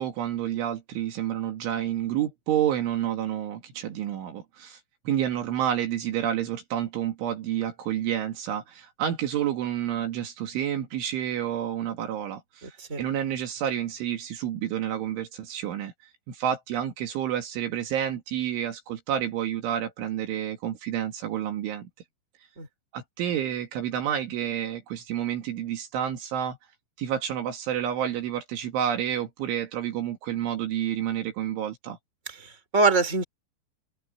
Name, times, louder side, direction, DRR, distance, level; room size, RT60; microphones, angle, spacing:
voice 1, 0.0-4.8 5.1-15.9 16.3-21.8 22.9-26.6 27.0-32.0, right 10 dB, 70° right, 4.4 m, -29 dB
voice 2, 12.6-13.0 22.6-22.7 32.4-33.2, right 3 dB, 15° right, 4.3 m, -24 dB
omnidirectional pair, 5.9 m